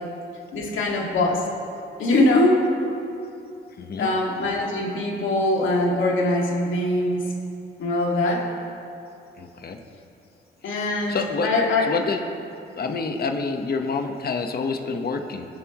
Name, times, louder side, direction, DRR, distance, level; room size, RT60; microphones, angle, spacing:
voice 1, 0.5-1.4 2.0-2.7 4.0-7.3 7.8-8.4 10.6-11.2 11.4-11.8, left 2 dB, 80° left, -1 dB, 2.1 m, -22 dB
voice 2, 3.8-4.1 9.4-9.8 10.6-10.7 11.1-11.5 11.8-12.2 12.7-15.5, left 4 dB, 50° left, 4 dB, 1.1 m, -27 dB
22.5 x 7.6 x 3.0 m, 2.7 s
cardioid pair, 65°, 20 cm